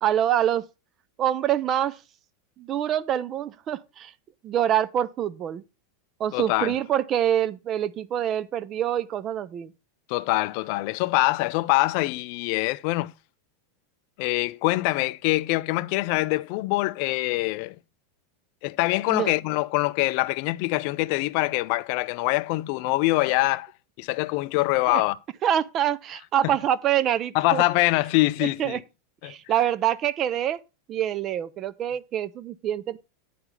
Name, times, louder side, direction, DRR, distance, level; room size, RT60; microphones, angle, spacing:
voice 1, 0.0-0.7 1.2-2.0 2.6-4.1 4.4-5.6 6.2-9.7 19.1-19.3 24.9-25.0 25.4-27.6 28.4-28.8 29.2-30.6 30.9-33.0, right 10 dB, 25° right, 0.4 m, -25 dB
voice 2, 6.3-6.7 10.1-13.1 14.2-17.8 18.6-23.7 24.0-25.2 26.4-26.5 27.3-28.8 29.2-29.3, left 20 dB, 45° left, 0.4 m, -24 dB
9.2 x 3.9 x 5.9 m
supercardioid pair, 165°, 0 cm